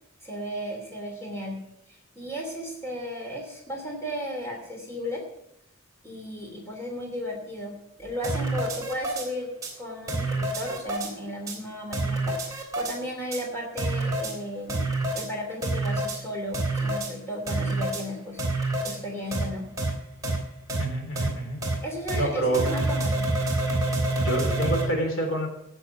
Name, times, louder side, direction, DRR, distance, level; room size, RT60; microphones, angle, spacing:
voice 1, 0.2-1.6 1.9-5.2 6.0-9.5 9.8-19.6 21.8-23.3, equal, 10° left, 0 dB, 2.9 m, -35 dB
sound 1, 8.2-9.3 9.6-9.7 10.1-11.1 11.5-11.6 11.9-13.0 13.3-13.4 13.8-14.3 14.7-15.3 15.6-16.2 16.5-17.1 17.5-18.0 18.4-19.0 19.3-19.4 19.8-19.9 20.2-20.4 20.7-20.8 21.2-21.3 21.6-21.7 22.1-22.2 22.5-24.9, right 2 dB, 15° right, 3.1 m, -27 dB
voice 2, 20.8-21.6 22.1-22.6 24.2-25.5, right 1 dB, 65° left, 2 dB, 3.6 m, -27 dB
16.5 x 6.8 x 6.1 m, 0.76 s
head